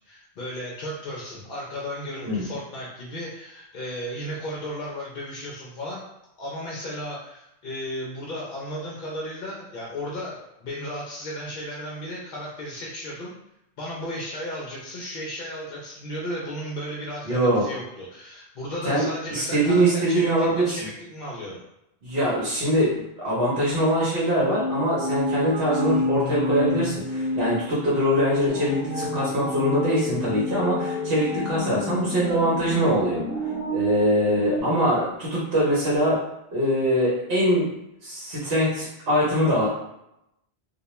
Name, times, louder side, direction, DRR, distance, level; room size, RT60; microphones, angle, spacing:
voice 1, 0.0-6.0 6.4-13.3 13.8-21.6, equal, 60° left, -4 dB, 0.7 m, -34 dB
voice 2, 17.2-17.6 18.9-20.8 22.0-36.2 36.5-37.7 38.0-39.7, equal, 70° right, -6 dB, 1.0 m, -23 dB
sound 1, 24.5-28.2, left 2 dB, 50° right, 0.6 m, -27 dB
sound 2, 28.5-34.6, equal, 10° right, 0.4 m, -30 dB
2.3 x 2.2 x 2.9 m, 0.82 s
omnidirectional pair, 1.1 m